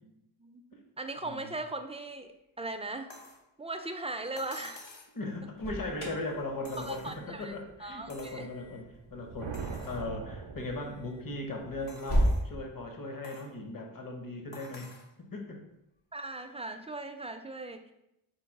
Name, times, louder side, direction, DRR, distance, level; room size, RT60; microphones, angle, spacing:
voice 1, 0.0-0.6 1.0-3.1 3.6-4.9 6.8-7.5 7.8-8.5 16.1-17.9, right 2 dB, 15° right, 6 dB, 0.4 m, -39 dB
sound 1, 3.1-3.4 4.4-5.2 6.6-7.4 8.1-8.4 8.9-9.0 9.5-10.0 10.6-10.7 11.9-12.5 13.2-13.5 14.5-15.1 16.4-16.5, left 2 dB, 65° left, 1.1 m, -50 dB
voice 2, 5.1-14.9 15.3-15.6, left 2 dB, 45° left, 2 dB, 1.0 m, -38 dB
Alarm, 5.3-12.4, equal, 80° left, 1.4 m, -36 dB
sound 2, 9.0-11.5, right 5 dB, 65° right, 0.6 m, -42 dB
4.7 x 2.3 x 4.7 m, 0.85 s
cardioid pair, 40°, 49 cm